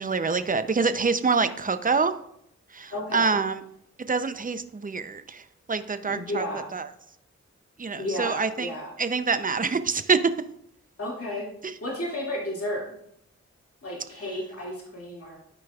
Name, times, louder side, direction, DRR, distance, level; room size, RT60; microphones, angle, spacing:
voice 1, 0.0-2.2 2.7-3.6 4.1-5.4 5.7-6.5 6.7-6.9 7.8-8.7 9.0-10.3 11.6-11.7, right 4 dB, 30° right, 11 dB, 0.5 m, -25 dB
voice 2, 2.9-3.4 6.1-6.7 8.0-8.9 11.0-11.5 11.8-12.9 13.8-15.4, left 1 dB, 50° left, -4 dB, 2.1 m, -32 dB
12.5 x 5.1 x 2.3 m, 0.75 s
wide cardioid pair, 60°, 29 cm